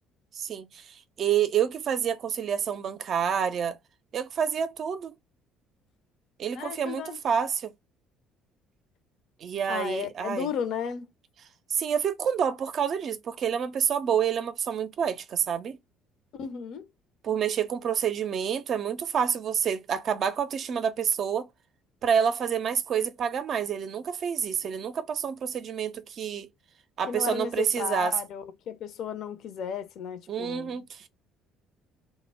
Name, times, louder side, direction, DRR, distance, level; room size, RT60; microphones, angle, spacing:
voice 1, 0.3-3.8 4.1-5.2 6.4-7.7 9.4-10.5 11.7-15.8 17.2-21.5 22.0-26.5 27.0-28.2 30.3-31.1, right 8 dB, 50° right, 0.4 m, -28 dB
voice 2, 6.5-7.2 9.7-11.1 16.4-16.9 27.1-30.8, left 7 dB, 60° left, 0.4 m, -34 dB
2.1 x 2.0 x 3.3 m
hypercardioid pair, 55°, 0 cm